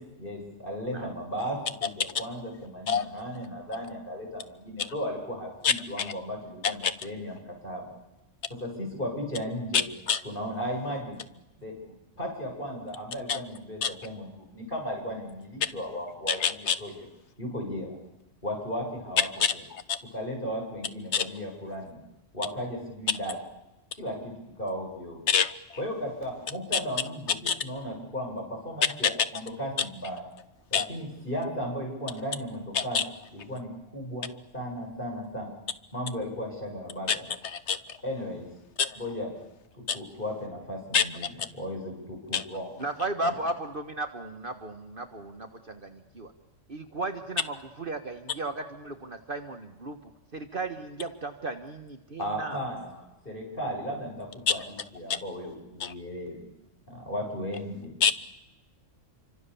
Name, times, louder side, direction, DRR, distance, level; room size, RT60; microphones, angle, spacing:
voice 1, 0.2-7.9 8.5-9.8 10.2-11.2 11.6-11.7 12.2-17.0 17.4-18.0 18.4-19.3 20.1-22.0 22.3-23.4 23.9-25.2 25.8-30.3 30.7-33.0 33.3-35.5 35.9-37.2 38.0-38.5 39.0-39.3 39.8-41.2 41.5-42.7 52.2-54.6 54.9-56.5 56.9-57.9, equal, 45° left, 0 dB, 7.4 m, -35 dB
voice 2, 5.6-6.1 6.6-6.9 9.7-9.8 10.1-10.2 13.3-13.4 13.8-13.9 15.6-15.7 16.3-16.8 19.4-20.0 21.1-21.3 25.3-25.6 27.5-27.6 29.0-29.1 30.7-30.9 32.7-33.0 37.1-37.2 37.4-37.8 38.8-39.0 39.9-40.0 40.9-41.0 41.4-41.5 42.3-42.4 54.5-54.6 55.1-55.2 55.8-55.9 58.0-58.1, left 7 dB, 65° left, 14 dB, 1.4 m, -26 dB
voice 3, 42.8-46.3 46.7-52.6, right 2 dB, 45° right, 6 dB, 1.6 m, -35 dB
29.0 x 25.0 x 7.0 m, 0.93 s
omnidirectional pair, 1.3 m